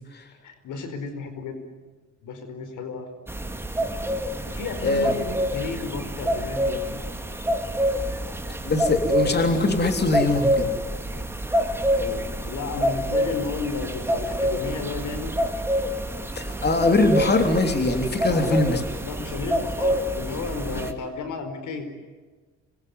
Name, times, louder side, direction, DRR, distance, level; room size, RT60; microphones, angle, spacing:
voice 1, 0.4-1.6 2.2-3.1 4.4-7.0 11.9-15.3 18.3-21.9, left 4 dB, 80° left, 8 dB, 4.7 m, -33 dB
sound 1, 3.3-20.9, equal, 10° right, 2.7 m, -27 dB
voice 2, 4.8-5.1 8.6-10.7 16.4-18.8, left 2 dB, 35° left, 6 dB, 3.5 m, -22 dB
26.5 x 22.5 x 9.6 m, 1.4 s
cardioid pair, 90°, 30 cm